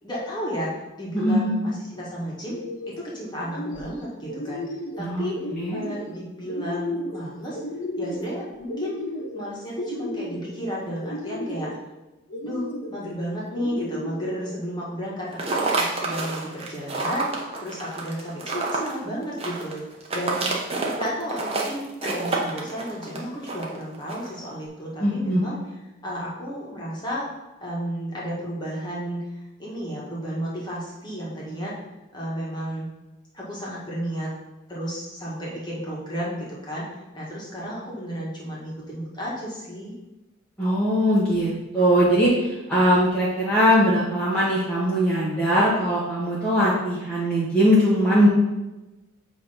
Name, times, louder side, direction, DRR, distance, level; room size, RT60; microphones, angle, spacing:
voice 1, 0.0-0.7 1.0-4.6 5.0-5.4 5.7-7.6 8.0-9.0 9.3-11.7 12.4-19.8 20.1-20.4 21.0-25.6 26.0-27.3 27.6-29.2 29.6-31.8 32.1-32.9 33.3-34.3 34.7-36.9 37.1-39.9, equal, 20° left, -5 dB, 1.6 m, -32 dB
voice 2, 1.1-1.6 5.0-5.3 5.5-5.8 25.0-25.4 40.6-48.3, equal, 5° left, -10 dB, 1.2 m, -21 dB
sound 1, 2.4-2.9 3.3-4.0 4.2-5.0 5.3-6.1 6.5-7.2 7.5-8.3 8.7-9.4 9.8-10.5 11.0-11.8 12.3-13.0 13.5-14.3, left 1 dB, 65° left, 1.1 m, -33 dB
sound 2, 15.3-24.3, right 3 dB, 30° right, 1.0 m, -28 dB
7.6 x 3.1 x 5.6 m, 1.0 s
head